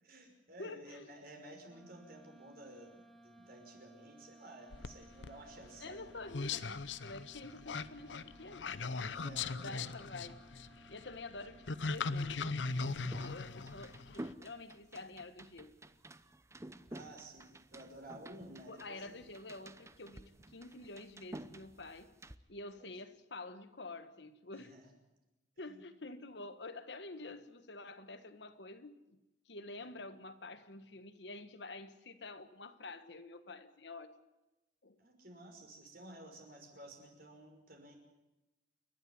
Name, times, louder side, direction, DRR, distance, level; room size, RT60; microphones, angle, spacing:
voice 1, 0.0-6.0 9.2-9.8 11.4-11.6 16.9-19.2 22.8-22.9 24.5-24.9 25.7-25.8 35.0-38.0, right 1 dB, 55° right, 3 dB, 5.7 m, -54 dB
voice 2, 0.6-1.1 5.8-10.4 10.9-15.8 18.7-22.1 22.5-24.8 25.6-29.2 29.4-34.1 34.8-35.0, left 2 dB, 65° left, 10 dB, 1.5 m, -48 dB
sound 1, 1.6-14.4, right 1 dB, ahead, 1.9 m, -61 dB
sound 2, 4.7-14.3, left 4 dB, 85° left, 0.8 m, -39 dB
sound 3, 12.6-22.4, right 1 dB, 15° right, 0.7 m, -52 dB
29.5 x 12.0 x 9.6 m, 1.0 s
head